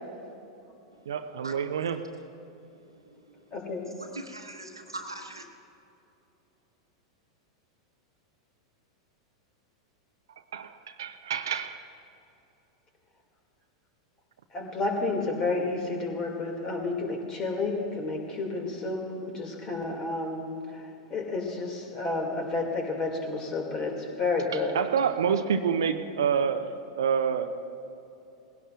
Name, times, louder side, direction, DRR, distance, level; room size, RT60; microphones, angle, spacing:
voice 1, 1.1-2.1 10.5-11.8 24.7-26.7 27.0-27.5, right 7 dB, 65° right, 8 dB, 0.7 m, -27 dB
voice 2, 2.9-3.5 4.0-5.5, right 2 dB, 85° right, 4 dB, 1.3 m, -42 dB
voice 3, 3.5-3.9 14.5-24.9, left 3 dB, 30° left, 2 dB, 2.4 m, -31 dB
20.0 x 16.5 x 2.5 m, 2.8 s
figure-of-eight pair, 90°, 2 cm